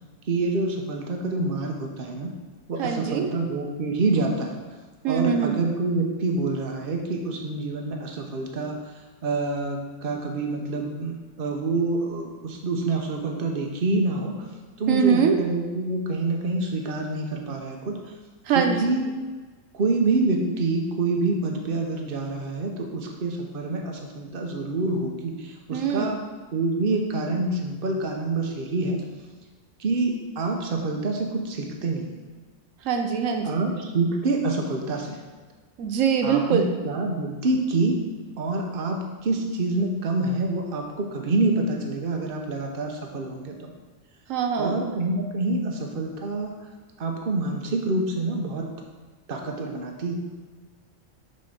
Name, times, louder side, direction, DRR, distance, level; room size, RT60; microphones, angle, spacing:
voice 1, 0.3-2.3 2.7-4.6 5.1-8.8 9.2-14.4 14.8-18.0 18.5-19.1 19.7-26.2 26.5-29.0 29.8-32.2 33.4-35.2 36.2-37.9 38.4-43.7 44.6-46.5 47.0-48.7 49.3-50.2, right 2 dB, 50° right, 2 dB, 1.0 m, -27 dB
voice 2, 2.8-3.3 5.0-5.6 14.9-15.4 18.5-18.9 25.7-26.2 32.8-33.5 35.8-36.7 44.3-44.8, right 7 dB, 85° right, 4 dB, 1.1 m, -23 dB
6.4 x 4.1 x 5.8 m, 1.4 s
omnidirectional pair, 1.3 m